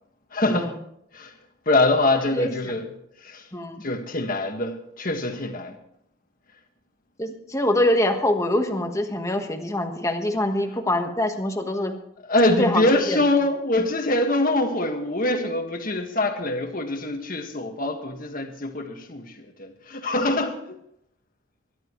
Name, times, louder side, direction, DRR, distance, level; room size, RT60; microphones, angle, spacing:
voice 1, 0.3-0.7 1.1-1.3 1.6-2.9 3.2-3.5 3.8-5.8 12.3-20.8, left 2 dB, 45° left, 1.7 m, -24 dB
voice 2, 2.3-2.7 3.5-3.8 7.2-11.9 12.6-13.2, left 1 dB, 15° left, 1.3 m, -24 dB
21.5 x 12.0 x 3.1 m
head